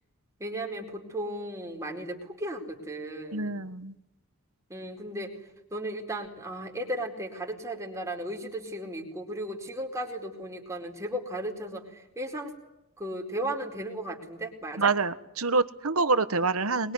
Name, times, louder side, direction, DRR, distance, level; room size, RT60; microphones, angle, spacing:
voice 1, 0.4-3.6 4.7-5.3 5.7-12.5 13.0-14.9, right 1 dB, 15° right, 2 dB, 4.5 m, -35 dB
voice 2, 3.3-3.9 14.8-16.9, right 3 dB, 80° right, 12 dB, 1.4 m, -26 dB
23.5 x 22.5 x 9.7 m, 0.87 s
head